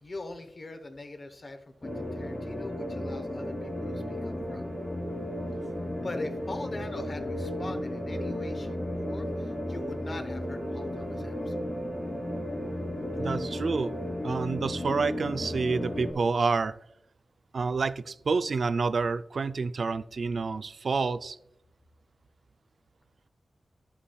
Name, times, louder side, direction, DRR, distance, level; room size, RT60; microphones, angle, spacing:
voice 1, 0.0-4.6 6.0-8.8 9.1-11.5, left 2 dB, 45° left, 7 dB, 0.9 m, -41 dB
sound 1, 1.8-16.1, left 1 dB, 30° left, 2.6 m, -34 dB
voice 2, 13.2-13.9 14.2-16.7 17.5-21.4, right 4 dB, 65° right, 13 dB, 0.3 m, -28 dB
10.5 x 7.0 x 2.3 m, 0.76 s
wide cardioid pair, 90°, 0 cm